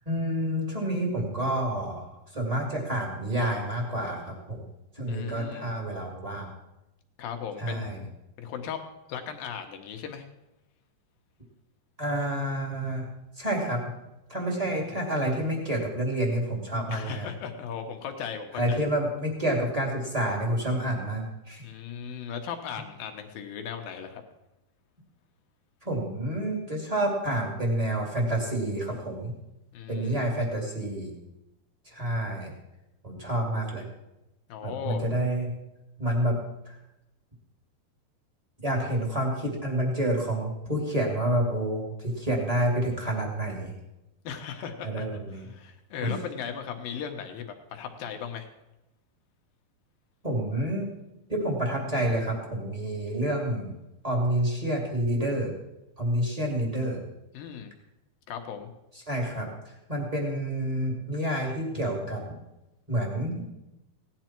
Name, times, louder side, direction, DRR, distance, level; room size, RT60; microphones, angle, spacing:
voice 1, 0.0-2.1 2.3-4.6 4.9-6.5 7.6-8.0 12.0-13.1 13.4-13.8 14.3-17.3 18.5-21.6 25.8-29.3 29.9-31.1 31.8-32.5 33.0-33.9 34.6-35.5 36.0-36.4 38.6-43.7 44.8-45.5 46.0-46.2 50.2-50.9 51.3-53.7 54.0-55.5 56.0-57.0 59.1-62.2 62.9-63.5, right 1 dB, 15° right, 0 dB, 1.5 m, -28 dB
voice 2, 5.1-5.7 7.2-8.1 8.4-8.8 9.1-10.3 16.9-18.9 21.6-24.2 29.7-30.4 34.5-35.1 44.2-48.5 57.3-57.7 58.3-58.7, left 7 dB, 70° left, 5 dB, 2.5 m, -37 dB
17.0 x 10.5 x 4.4 m, 0.93 s
omnidirectional pair, 4.7 m